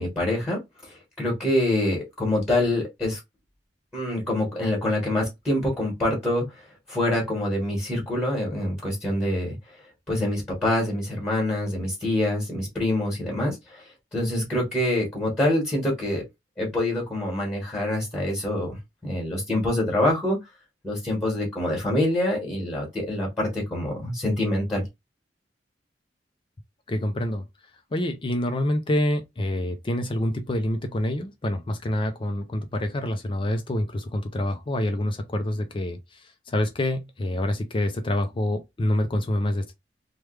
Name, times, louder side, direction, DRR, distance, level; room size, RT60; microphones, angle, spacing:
voice 1, 0.0-3.2 3.9-6.4 6.9-9.6 10.1-13.8 14.1-16.2 16.6-18.8 19.0-20.4 20.8-24.9, left 1 dB, 10° left, 1.4 m, -25 dB
voice 2, 26.9-27.5 27.9-39.7, left 1 dB, 30° left, 0.4 m, -27 dB
3.2 x 2.2 x 3.2 m
head